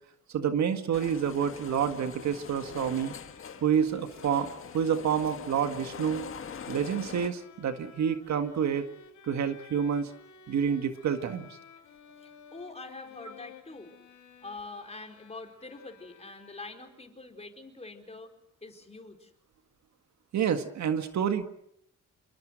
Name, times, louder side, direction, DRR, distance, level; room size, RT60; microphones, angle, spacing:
voice 1, 0.3-3.1 3.6-4.5 4.7-6.2 6.7-8.8 9.3-10.1 10.5-11.5 20.3-21.4, right 8 dB, 65° right, 8 dB, 1.8 m, -28 dB
sound 1, 0.9-7.3, left 7 dB, 45° left, 1.6 m, -43 dB
Bowed string instrument, 2.7-17.2, left 7 dB, 80° left, 3.7 m, -54 dB
voice 2, 12.2-14.0 14.4-18.3 18.6-19.3, left 3 dB, 20° left, 4 dB, 4.6 m, -45 dB
26.5 x 23.5 x 6.4 m, 0.73 s
cardioid pair, 90°, 30 cm